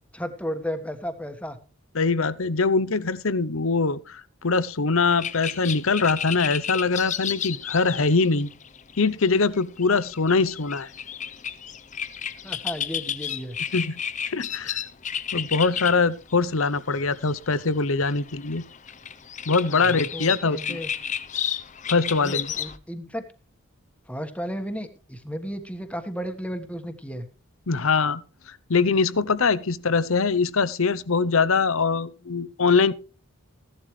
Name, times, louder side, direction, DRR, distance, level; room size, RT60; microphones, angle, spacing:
voice 1, 0.1-1.6 12.4-13.6 19.7-20.9 22.2-23.2 24.1-27.3, equal, 5° left, 1.4 m, -33 dB
voice 2, 1.9-8.5 9.0-10.9 13.7-14.0 14.3-14.8 15.3-18.6 19.5-20.8 21.9-22.5 27.7-28.2 28.5-32.9, left 4 dB, 70° left, 0.8 m, -23 dB
sound 1, 5.1-16.0 16.3-16.4 16.6-22.8, left 9 dB, 35° left, 0.7 m, -32 dB
16.0 x 11.5 x 3.2 m
head